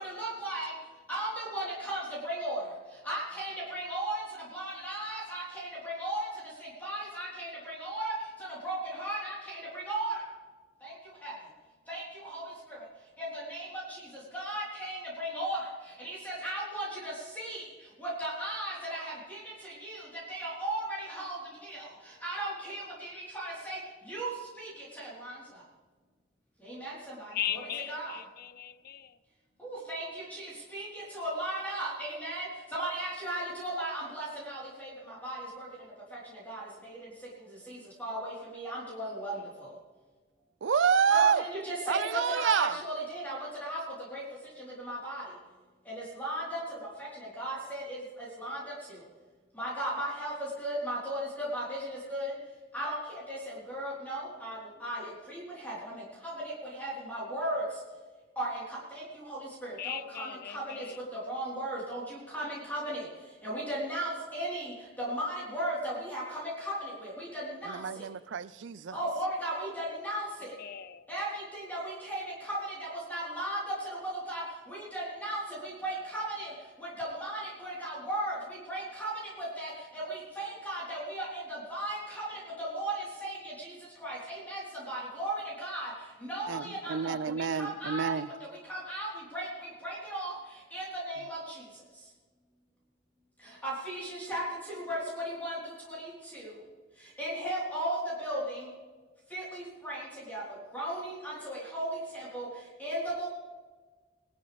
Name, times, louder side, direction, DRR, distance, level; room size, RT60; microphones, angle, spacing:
voice 1, 0.0-0.7 1.1-4.2 4.5-10.2 10.8-11.5 11.9-12.9 13.2-25.6 26.6-27.6 27.9-28.2 29.6-39.7 41.1-45.4 45.8-49.0 49.5-52.4 52.7-57.8 58.4-68.0 68.9-70.5 71.1-85.9 86.2-88.2 88.6-92.1 93.4-96.6 96.9-98.7 99.3-103.3, right 1 dB, 10° left, 4.0 m, -37 dB
voice 2, 27.3-29.2 59.8-61.0 70.6-71.1, left 10 dB, 55° left, 0.6 m, -38 dB
voice 3, 40.6-41.4 41.9-42.8 67.7-69.0 86.5-88.3, right 7 dB, 80° right, 0.5 m, -28 dB
21.0 x 12.5 x 3.5 m
head